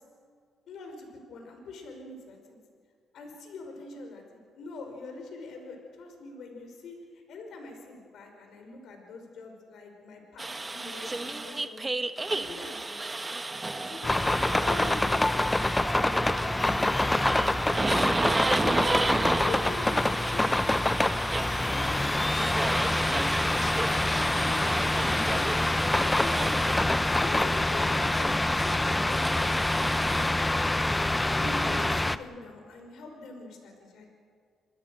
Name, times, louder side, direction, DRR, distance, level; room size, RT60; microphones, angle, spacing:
voice 1, 0.7-2.6 3.1-7.0 7.3-11.9 12.3-12.8 13.7-17.5 18.6-19.0 19.4-20.0 20.3-30.9 31.4-34.1, left 3 dB, 70° left, 4 dB, 5.3 m, -44 dB
sound 1, 10.4-30.3, right 2 dB, 20° right, 1.1 m, -33 dB
sound 2, 14.0-32.2, left 1 dB, 15° left, 0.7 m, -26 dB
28.0 x 20.0 x 6.4 m, 2.2 s
cardioid pair, 90°, 0 cm